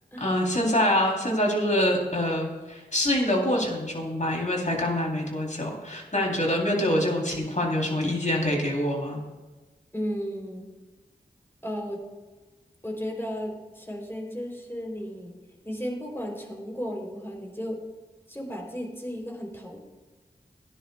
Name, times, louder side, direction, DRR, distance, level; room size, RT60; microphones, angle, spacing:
voice 1, 0.2-9.2, left 1 dB, 45° left, 0 dB, 3.5 m, -25 dB
voice 2, 9.9-10.7 11.6-12.0 12.8-15.3 15.6-17.8 18.3-19.8, equal, 15° left, 0 dB, 3.5 m, -34 dB
17.5 x 10.5 x 2.4 m, 1.2 s
wide cardioid pair, 45°, 17 cm